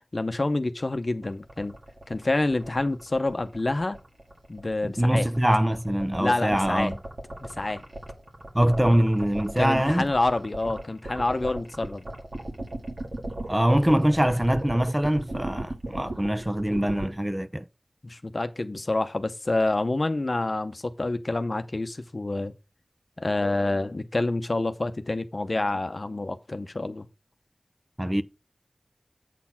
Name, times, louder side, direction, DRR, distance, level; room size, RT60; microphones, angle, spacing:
voice 1, 0.1-1.8 2.1-4.0 4.5-5.3 6.2-6.9 7.4-7.8 9.6-12.0 18.0-22.5 23.2-27.1, left 2 dB, 55° left, 0.7 m, -27 dB
sound 1, 1.2-17.1, right 1 dB, 70° right, 2.0 m, -37 dB
voice 2, 4.8-6.9 8.5-10.1 13.5-17.6 28.0-28.2, equal, 15° right, 0.6 m, -23 dB
8.2 x 4.3 x 5.7 m
wide cardioid pair, 50°, 0 cm